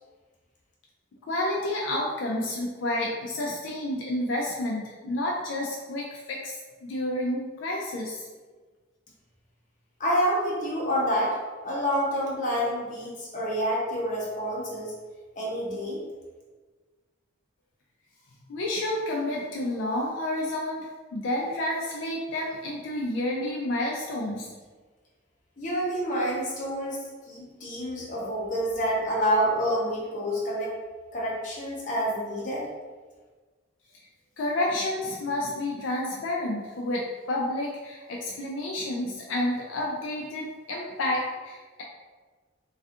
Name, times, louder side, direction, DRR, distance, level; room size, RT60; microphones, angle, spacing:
voice 1, 1.2-8.3 18.5-24.5 34.4-37.0 37.3-41.8, left 1 dB, 75° left, -2 dB, 0.3 m, -30 dB
voice 2, 10.0-14.9 15.4-16.0 25.6-27.0 27.3-30.7 31.1-32.7, equal, 40° left, -5 dB, 0.6 m, -28 dB
2.5 x 2.4 x 2.4 m, 1.4 s
head